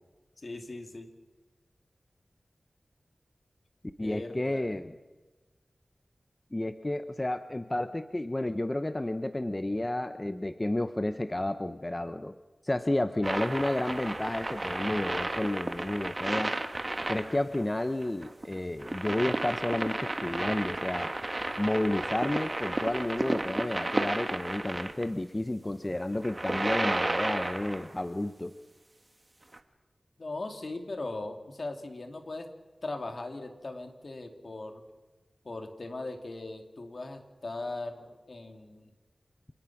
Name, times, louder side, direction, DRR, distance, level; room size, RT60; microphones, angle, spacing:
voice 1, 0.4-1.1 4.0-4.8 30.2-32.5 32.8-34.8 35.4-38.9, left 2 dB, 55° left, 5 dB, 2.5 m, -39 dB
voice 2, 4.0-5.0 6.5-12.3 12.6-16.5 17.1-21.1 21.6-28.5, left 1 dB, 25° left, 10 dB, 0.7 m, -31 dB
sound 1, 13.2-25.0 26.1-28.0 29.5-29.6, right 2 dB, 30° right, 1.6 m, -33 dB
27.0 x 18.5 x 6.0 m, 1.2 s
wide cardioid pair, 85°, 0 cm